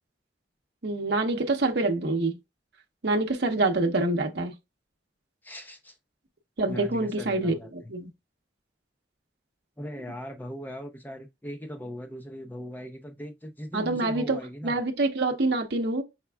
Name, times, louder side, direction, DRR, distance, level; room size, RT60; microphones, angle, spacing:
voice 1, 0.8-2.4 3.0-4.5 6.6-8.1 13.7-14.4 14.6-16.0, right 2 dB, 60° right, 0.8 m, -26 dB
voice 2, 5.4-6.0 6.7-7.9 9.8-14.8, equal, 10° left, 0.6 m, -39 dB
5.7 x 3.4 x 2.3 m
head